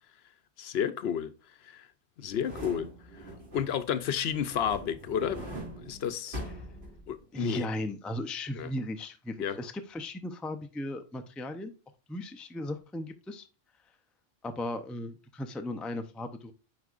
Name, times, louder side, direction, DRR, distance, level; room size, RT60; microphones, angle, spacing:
voice 1, 0.6-1.3 1.6-1.9 2.2-2.9 3.5-5.4 5.8-6.5 7.1-7.6 8.6-8.7 9.4-9.6, left 8 dB, 70° left, 0.9 m, -31 dB
sound 1, 2.3-3.9 4.3-7.4 7.7-7.8, equal, 70° right, 3.0 m, -42 dB
voice 2, 7.3-11.7 12.1-13.5 14.4-16.5, left 1 dB, ahead, 0.3 m, -36 dB
8.3 x 4.7 x 2.4 m
omnidirectional pair, 1.1 m